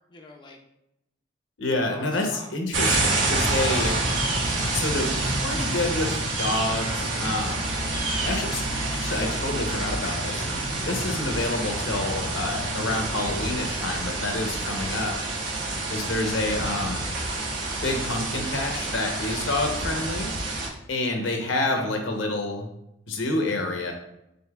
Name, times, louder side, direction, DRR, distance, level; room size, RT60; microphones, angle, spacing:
voice 1, 0.1-0.6 1.8-2.5 15.3-16.0 21.7-21.8, left 2 dB, 25° left, 1 dB, 0.4 m, -46 dB
voice 2, 1.6-4.0 4.7-7.7 8.2-8.6 8.9-10.6 10.9-15.2 15.9-17.0 17.8-20.3 20.9-22.7 23.1-23.9, left 2 dB, 80° left, 3 dB, 0.8 m, -28 dB
sound 1, 2.7-20.7, right 2 dB, 80° right, 1.0 m, -28 dB
5.3 x 3.5 x 2.3 m, 0.84 s
head